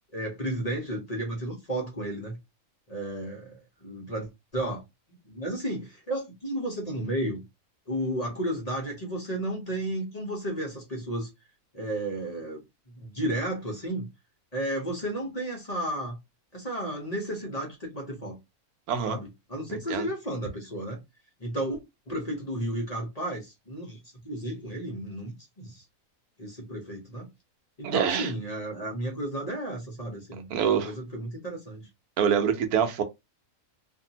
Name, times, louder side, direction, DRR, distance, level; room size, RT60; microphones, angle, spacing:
voice 1, 0.1-2.4 2.9-4.8 5.3-7.4 7.9-11.3 11.7-12.6 13.0-14.1 14.5-16.2 16.5-18.4 19.1-21.0 21.4-21.8 22.1-25.8 26.4-27.3 27.8-31.9, right 1 dB, 35° left, 0.8 m, -33 dB
voice 2, 19.7-20.1 27.8-28.3 30.5-30.9 32.2-33.0, right 7 dB, 85° right, 1.1 m, -25 dB
2.6 x 2.6 x 2.7 m
omnidirectional pair, 1.5 m